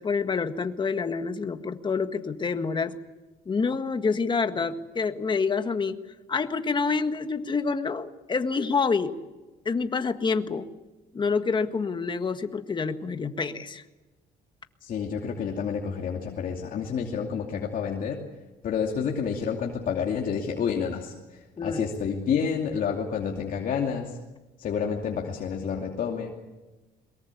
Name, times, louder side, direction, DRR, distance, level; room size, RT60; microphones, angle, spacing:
voice 1, 0.0-3.0 3.4-6.0 6.3-9.1 9.6-10.7 11.1-13.8 21.6-21.9, left 5 dB, 25° left, 9 dB, 1.7 m, -27 dB
voice 2, 14.8-18.2 18.6-24.2 24.6-26.5, left 6 dB, 55° left, 1 dB, 2.7 m, -29 dB
23.0 x 21.5 x 8.4 m, 1.2 s
cardioid pair, 110°, 17 cm